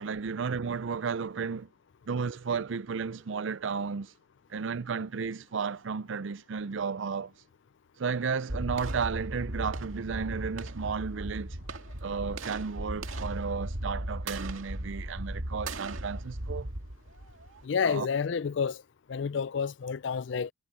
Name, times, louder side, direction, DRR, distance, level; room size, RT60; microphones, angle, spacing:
voice 1, 0.0-1.7 2.1-4.1 4.5-7.3 8.0-11.6 12.0-16.7 17.8-18.1, right 5 dB, 70° right, 0.5 m, -33 dB
sound 1, 8.5-17.6, right 1 dB, 90° right, 2.1 m, -37 dB
voice 2, 17.6-18.8 19.1-20.5, left 6 dB, 60° left, 0.4 m, -29 dB
head